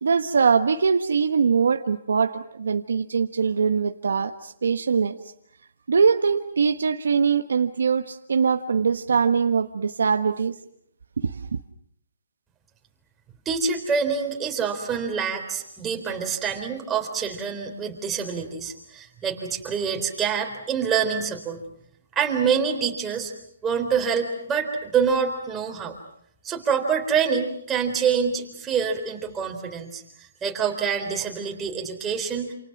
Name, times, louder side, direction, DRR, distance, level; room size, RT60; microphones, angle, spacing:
voice 1, 0.0-5.2 5.9-10.5 11.2-11.3, right 5 dB, 85° right, 8 dB, 1.3 m, -22 dB
voice 2, 13.5-21.6 22.2-23.3 23.6-26.0 26.4-32.5, right 6 dB, 15° right, 3 dB, 3.9 m, -26 dB
28.5 x 28.5 x 6.1 m, 0.72 s
hypercardioid pair, 160°, 0 cm